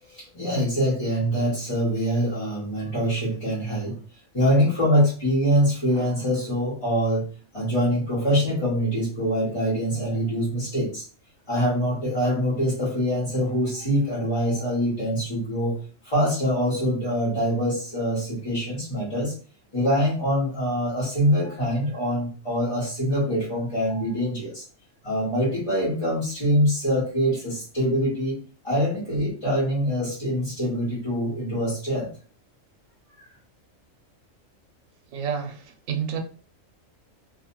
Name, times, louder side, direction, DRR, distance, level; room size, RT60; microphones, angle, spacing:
voice 1, 0.0-4.0 4.3-7.3 7.5-11.0 11.5-15.8 16.0-19.3 19.7-24.6 25.0-28.4 28.6-32.1, equal, 25° left, 0.9 m, -24 dB
voice 2, 35.1-36.2, right 7 dB, 75° right, 0.9 m, -29 dB
2.5 x 2.3 x 2.9 m
omnidirectional pair, 1.4 m